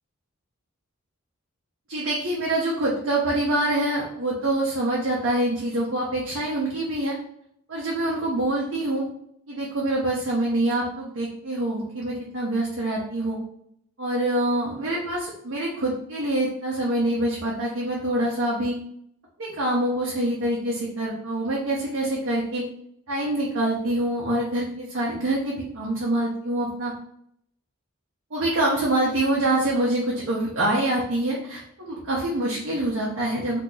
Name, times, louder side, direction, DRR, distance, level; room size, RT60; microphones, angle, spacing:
voice 1, 1.9-7.2 7.7-9.0 9.5-13.4 14.0-18.7 19.4-22.6 23.1-26.9 28.3-33.6, right 1 dB, 60° right, -5 dB, 0.7 m, -25 dB
2.8 x 2.5 x 3.8 m, 0.70 s
head